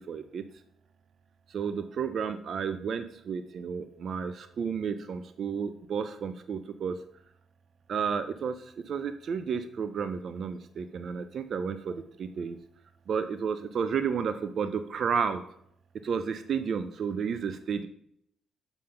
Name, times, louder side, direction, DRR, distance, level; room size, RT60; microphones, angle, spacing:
voice 1, 0.1-0.4 1.5-7.0 7.9-12.6 13.1-15.4 16.0-17.9, right 6 dB, 55° right, 9 dB, 0.5 m, -32 dB
7.3 x 5.1 x 5.7 m, 0.69 s
cardioid pair, 90°, 0 cm